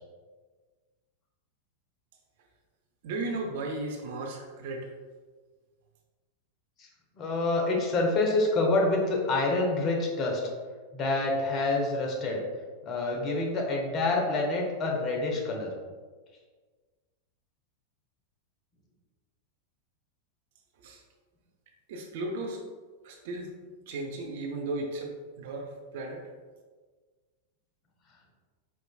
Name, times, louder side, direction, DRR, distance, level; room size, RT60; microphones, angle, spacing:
voice 1, 3.0-4.9 20.8-21.0 21.9-22.6 23.0-23.5 23.9-25.1 25.4-26.3, right 2 dB, 55° right, 1 dB, 0.7 m, -35 dB
voice 2, 7.2-10.4 10.9-12.4 12.8-15.7, left 2 dB, 30° left, 0 dB, 0.9 m, -27 dB
4.8 x 4.5 x 2.3 m, 1.4 s
figure-of-eight pair, 90°, 0 cm